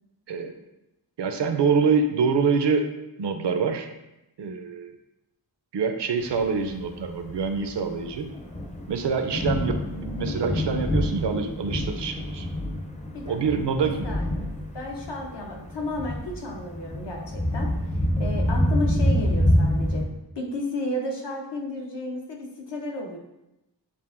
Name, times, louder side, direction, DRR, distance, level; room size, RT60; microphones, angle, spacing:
voice 1, 1.2-2.9 3.2-3.9 4.4-4.9 5.7-8.3 8.9-12.5 13.3-14.1, right 5 dB, 75° right, 6 dB, 0.5 m, -25 dB
Thunder, 6.4-20.0, left 1 dB, 20° left, 0.5 m, -27 dB
voice 2, 13.8-14.4 14.7-20.1 20.4-23.2, left 1 dB, 75° left, 0 dB, 0.9 m, -33 dB
7.0 x 2.5 x 2.5 m, 0.92 s
wide cardioid pair, 80°, 42 cm